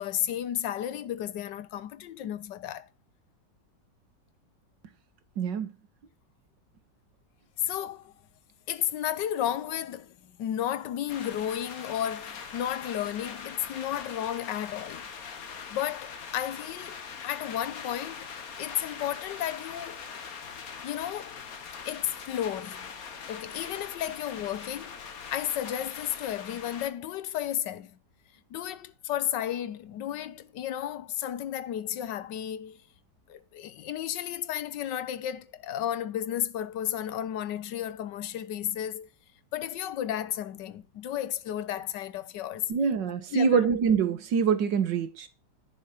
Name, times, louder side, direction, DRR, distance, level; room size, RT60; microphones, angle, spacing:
voice 1, 0.0-2.9 7.7-8.1 8.7-15.1 15.7-18.3 18.6-20.0 20.8-21.4 21.9-22.9 23.3-25.0 25.3-27.9 28.5-32.8 33.3-39.1 39.5-42.7 43.3-43.7, left 11 dB, 85° left, 1.5 m, -33 dB
voice 2, 5.4-5.7 42.7-45.3, right 6 dB, 85° right, 2.0 m, -25 dB
sound 1, 11.1-26.9, left 6 dB, 55° left, 1.7 m, -42 dB
10.5 x 5.9 x 6.5 m
omnidirectional pair, 1.9 m